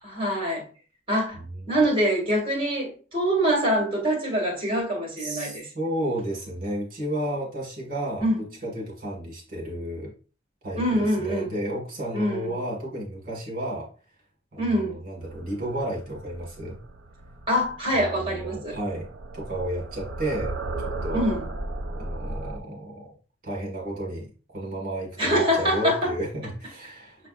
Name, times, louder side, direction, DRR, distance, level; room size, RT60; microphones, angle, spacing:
voice 1, 0.0-0.7 1.1-1.4 1.7-5.7 8.2-8.4 10.8-11.5 12.1-12.5 14.6-15.0 17.5-18.8 21.1-21.5 25.2-26.1, equal, 30° right, 1.9 m, -24 dB
voice 2, 5.2-10.1 10.6-10.8 11.2-13.9 14.5-16.8 18.1-19.1 19.3-20.6 20.8-21.3 22.0-23.1 23.4-27.2, right 1 dB, 50° right, 1.7 m, -32 dB
sound 1, 15.2-22.6, right 2 dB, 80° right, 0.6 m, -35 dB
6.5 x 3.3 x 2.4 m
head